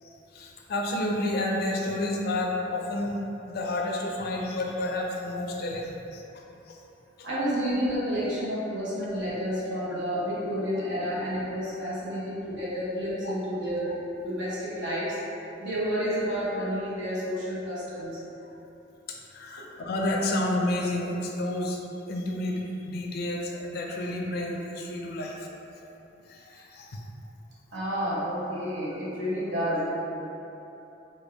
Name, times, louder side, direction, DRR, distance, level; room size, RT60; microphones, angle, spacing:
voice 1, 0.0-3.2 3.5-6.8 13.2-13.3 19.1-21.8 22.1-25.5 26.3-27.0, left 1 dB, 55° left, 0 dB, 0.4 m, -30 dB
voice 2, 7.2-13.9 14.2-15.2 15.6-18.2 27.7-29.9, equal, 75° right, -9 dB, 0.9 m, -30 dB
3.3 x 2.2 x 3.3 m, 3.0 s
head